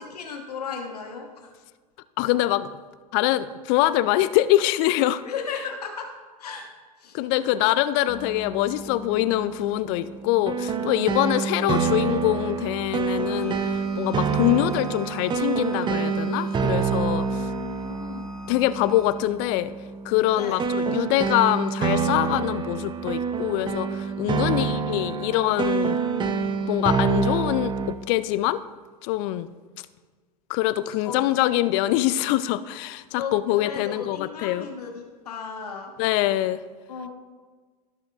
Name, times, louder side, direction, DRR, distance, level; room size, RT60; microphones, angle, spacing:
voice 1, 0.0-1.5 5.2-6.1 6.4-6.7 7.0-7.6 17.2-18.3 20.3-20.6 24.4-25.1 31.0-31.2 33.2-33.4 33.6-35.9 36.9-37.1, left 6 dB, 75° left, 2 dB, 1.4 m, -35 dB
voice 2, 2.2-2.7 3.1-5.2 7.1-17.5 18.5-19.7 20.0-26.0 26.7-28.6 29.0-29.5 30.5-34.7 36.0-36.6, left 14 dB, 45° left, 14 dB, 0.4 m, -24 dB
sound 1, 8.1-27.9, right 5 dB, 25° right, 0.7 m, -27 dB
Bowed string instrument, 13.2-19.2, left 2 dB, ahead, 1.0 m, -47 dB
17.5 x 6.2 x 2.5 m, 1.4 s
figure-of-eight pair, 80°, 20 cm